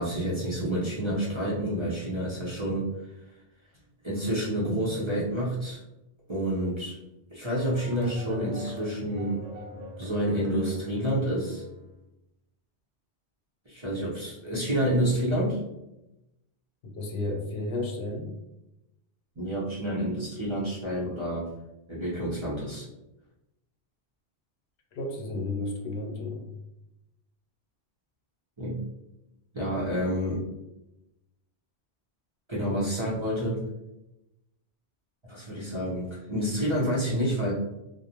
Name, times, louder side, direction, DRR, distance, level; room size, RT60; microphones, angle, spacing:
voice 1, 0.0-2.9 4.0-5.8 6.3-7.0 7.3-9.4 10.0-11.6 13.7-15.6 19.4-21.5 21.9-22.9 28.6-28.8 29.5-30.5 32.5-33.6 35.3-37.5, equal, 35° right, -7 dB, 0.6 m, -29 dB
sound 1, 7.5-11.9, left 2 dB, 75° right, 0.8 m, -42 dB
voice 2, 16.8-18.3 24.9-26.5, left 2 dB, 70° left, 1 dB, 0.8 m, -32 dB
2.5 x 2.0 x 2.8 m, 0.92 s
omnidirectional pair, 1.1 m